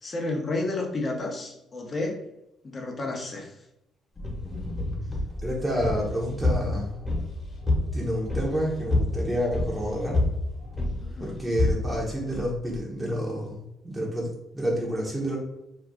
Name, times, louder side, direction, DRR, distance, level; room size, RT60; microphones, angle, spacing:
voice 1, 0.0-2.2 2.6-3.5 11.0-11.4, left 2 dB, 40° left, 1 dB, 0.9 m, -31 dB
sound 1, 4.2-12.8, left 2 dB, 25° left, 1.3 m, -29 dB
voice 2, 5.4-7.0 7.9-10.2 11.2-15.4, equal, 10° right, -4 dB, 1.0 m, -29 dB
2.7 x 2.3 x 3.5 m, 0.87 s
supercardioid pair, 65°, 0 cm